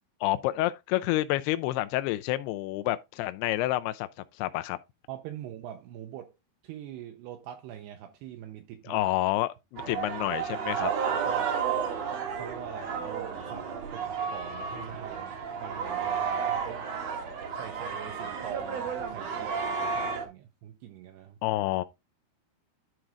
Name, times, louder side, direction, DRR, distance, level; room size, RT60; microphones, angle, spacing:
voice 1, 0.2-4.1 4.4-4.8 8.8-10.9 21.4-21.8, left 16 dB, 80° left, 2.4 m, -29 dB
voice 2, 5.1-6.4 6.6-9.0 11.1-11.5 12.3-16.9 17.5-21.4, right 10 dB, 80° right, 2.7 m, -43 dB
sound 1, 9.8-20.2, right 6 dB, 60° right, 1.7 m, -32 dB
11.5 x 4.6 x 3.8 m
omnidirectional pair, 5.2 m